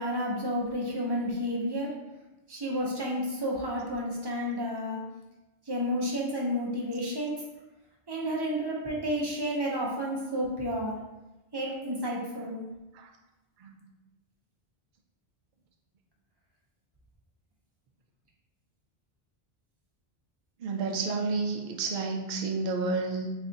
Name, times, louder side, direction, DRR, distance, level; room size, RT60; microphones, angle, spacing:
voice 1, 0.0-1.9 2.5-5.0 5.7-7.4 8.1-11.0 11.5-12.6, equal, 25° right, -3 dB, 0.7 m, -31 dB
voice 2, 20.6-23.3, right 3 dB, 60° right, 2 dB, 0.6 m, -30 dB
3.4 x 2.4 x 3.9 m, 1.0 s
omnidirectional pair, 1.1 m